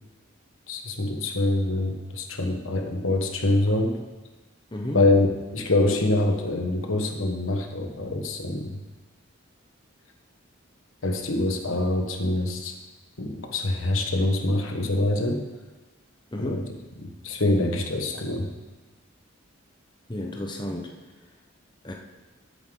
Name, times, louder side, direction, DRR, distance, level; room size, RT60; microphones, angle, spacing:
voice 1, 0.7-4.0 4.9-8.8 11.0-12.7 13.2-15.4 16.4-16.6 17.0-18.5, left 2 dB, 80° left, 4 dB, 1.4 m, -25 dB
voice 2, 4.7-5.1 16.3-16.7 20.1-20.9 21.8-21.9, left 1 dB, 20° left, 1 dB, 0.9 m, -32 dB
13.5 x 8.6 x 3.9 m, 1.2 s
head